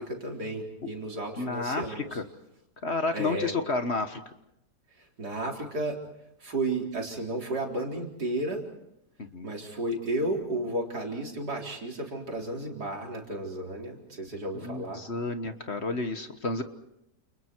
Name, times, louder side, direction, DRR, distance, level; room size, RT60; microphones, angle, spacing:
voice 1, 0.0-2.2 3.1-3.5 5.2-6.0 6.4-8.6 9.4-15.0, right 1 dB, 70° right, 0 dB, 4.6 m, -33 dB
voice 2, 1.4-2.2 2.8-4.2 9.2-9.5 14.5-16.6, left 3 dB, 40° left, 8 dB, 1.5 m, -31 dB
30.0 x 29.0 x 4.6 m, 0.80 s
omnidirectional pair, 1.8 m